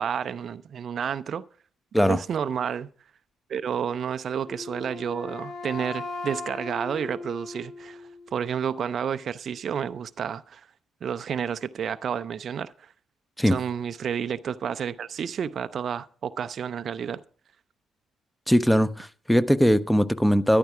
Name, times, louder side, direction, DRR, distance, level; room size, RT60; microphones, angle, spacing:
voice 1, 0.0-1.4 2.1-2.9 3.5-10.7 11.0-12.9 13.5-17.2, right 8 dB, 55° right, 0.5 m, -30 dB
Wind instrument woodwind instrument, 4.4-8.4, left 3 dB, 55° left, 4.9 m, -38 dB
voice 2, 18.5-20.6, equal, 5° left, 0.8 m, -20 dB
13.5 x 11.0 x 4.7 m
figure-of-eight pair, 45°, 0 cm